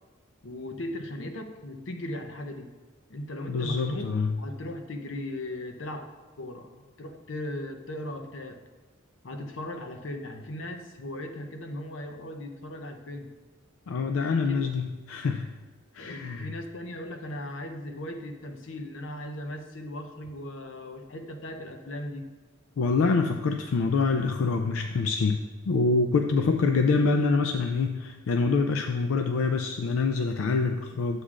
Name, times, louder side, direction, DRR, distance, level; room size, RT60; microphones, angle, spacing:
voice 1, 0.4-2.7 3.1-4.1 4.4-6.1 6.4-8.6 9.2-13.3 14.2-14.7 16.0-22.3, left 1 dB, 65° left, 5 dB, 0.7 m, -38 dB
voice 2, 3.5-4.4 13.9-15.5 15.9-16.5 22.8-31.2, left 4 dB, 85° left, 5 dB, 0.4 m, -25 dB
9.8 x 7.5 x 2.4 m, 1.3 s
head